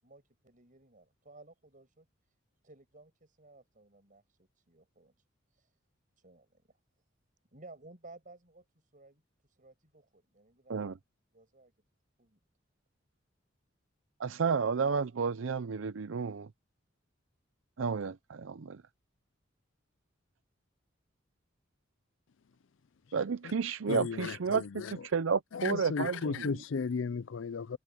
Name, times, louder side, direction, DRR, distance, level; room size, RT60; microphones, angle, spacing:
voice 1, 0.0-2.1 2.6-5.1 6.2-6.8 7.5-8.6 8.9-9.2 9.6-11.0 11.3-11.7 12.2-12.4, right 2 dB, 45° right, 7.5 m, -56 dB
voice 2, 14.2-16.5 17.8-18.8 23.1-26.5, right 5 dB, 80° right, 0.6 m, -31 dB
voice 3, 23.9-24.9 25.5-27.8, left 5 dB, 75° left, 0.5 m, -35 dB
head